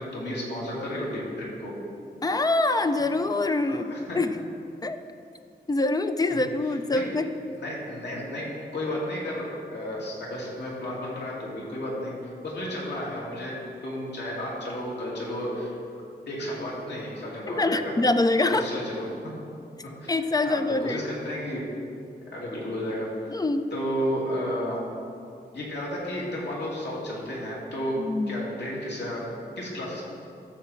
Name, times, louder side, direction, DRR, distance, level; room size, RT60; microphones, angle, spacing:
voice 1, 0.0-1.7 3.7-4.2 6.9-7.0 7.5-8.5 8.7-9.4 9.7-13.5 13.8-15.7 16.3-17.9 18.5-19.3 20.0-20.2 20.4-21.6 22.3-23.4 23.7-24.8 25.5-27.9 28.3-29.2 29.6-30.0, equal, 85° left, -5 dB, 2.6 m, -32 dB
voice 2, 2.2-4.3 4.8-5.0 5.7-7.3 17.6-18.7 20.1-21.0 23.3-23.7 28.0-28.4, left 2 dB, 20° left, 9 dB, 0.4 m, -25 dB
13.5 x 7.0 x 4.4 m, 2.5 s
wide cardioid pair, 175°, 17 cm